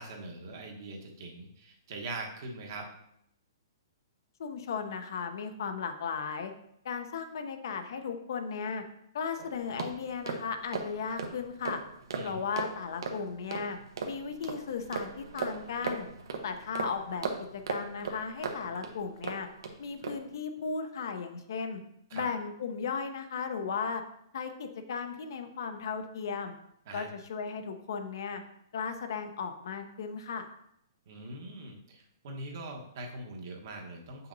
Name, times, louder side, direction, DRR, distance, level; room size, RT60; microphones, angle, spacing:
voice 1, 0.0-2.9 12.1-12.4 22.1-22.3 26.9-27.1 31.1-34.3, right 2 dB, 50° right, 0 dB, 1.2 m, -42 dB
voice 2, 4.4-6.5 6.8-8.8 9.1-11.8 12.2-13.8 14.0-16.1 16.4-19.5 19.8-21.8 22.1-24.0 24.3-26.5 26.9-28.4 28.7-30.5, left 5 dB, 60° left, 7 dB, 0.7 m, -36 dB
sound 1, 9.4-19.7 20.0-20.3, right 4 dB, 75° right, 0.9 m, -38 dB
6.9 x 5.6 x 2.7 m, 0.75 s
hypercardioid pair, 160°, 2 cm